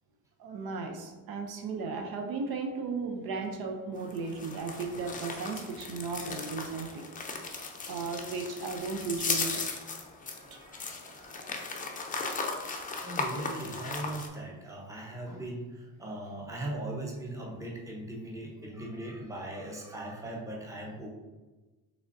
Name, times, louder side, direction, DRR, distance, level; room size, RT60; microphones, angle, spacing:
voice 1, 0.4-7.0 7.4-9.6, right 4 dB, 75° right, 4 dB, 0.6 m, -35 dB
sound 1, 4.0-14.3, left 4 dB, 20° left, 0.5 m, -37 dB
voice 2, 8.8-9.2 9.8-11.6 12.0-12.4 13.0-21.1, right 1 dB, 10° right, -2 dB, 0.8 m, -40 dB
4.9 x 3.4 x 2.6 m, 1.2 s
cardioid pair, 125°, 37 cm